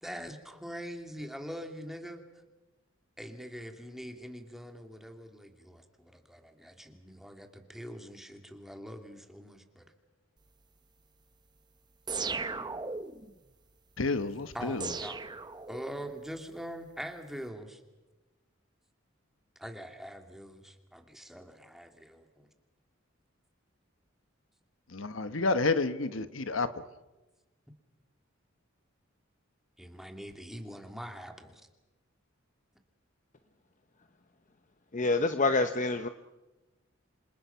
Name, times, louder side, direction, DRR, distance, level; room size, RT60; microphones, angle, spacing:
voice 1, 0.0-2.2 3.2-9.9 14.5-15.3 15.7-17.8 19.6-22.5 29.8-31.6, equal, ahead, 2.5 m, -43 dB
sound 1, 12.1-13.3 14.8-16.1, right 4 dB, 20° right, 0.8 m, -36 dB
voice 2, 14.0-14.9 24.9-26.7, left 3 dB, 70° left, 1.2 m, -30 dB
voice 3, 34.9-36.1, left 3 dB, 40° left, 0.9 m, -27 dB
27.5 x 27.5 x 5.8 m
head